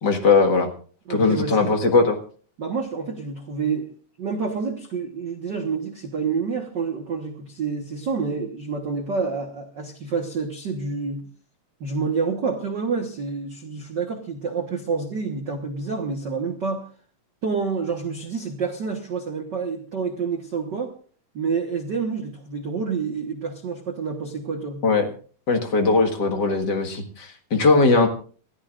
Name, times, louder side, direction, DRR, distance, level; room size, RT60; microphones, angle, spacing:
voice 1, 0.0-0.7 1.1-2.2 24.8-25.1 25.5-28.1, left 3 dB, 40° left, 4 dB, 1.8 m, -19 dB
voice 2, 1.1-1.7 2.6-3.9 4.2-11.2 11.8-16.8 17.4-20.9 21.3-24.8, right 5 dB, 50° right, 3 dB, 1.3 m, -28 dB
29.0 x 13.5 x 2.5 m, 0.43 s
omnidirectional pair, 3.8 m